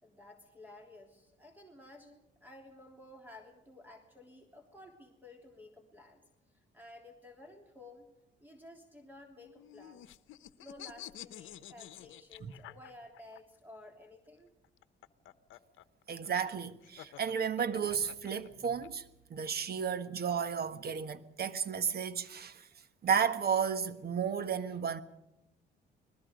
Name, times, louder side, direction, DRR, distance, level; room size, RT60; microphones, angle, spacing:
voice 1, 0.0-6.2 6.7-8.1 8.4-10.0 10.6-14.5, left 1 dB, 10° right, 3.2 m, -54 dB
sound 1, 9.4-13.4 14.6-18.9, left 13 dB, 85° left, 0.9 m, -50 dB
voice 2, 16.1-19.0 19.3-22.7 23.0-25.0, right 7 dB, 50° right, 1.4 m, -33 dB
29.5 x 20.5 x 5.2 m
cardioid pair, 90°, 20 cm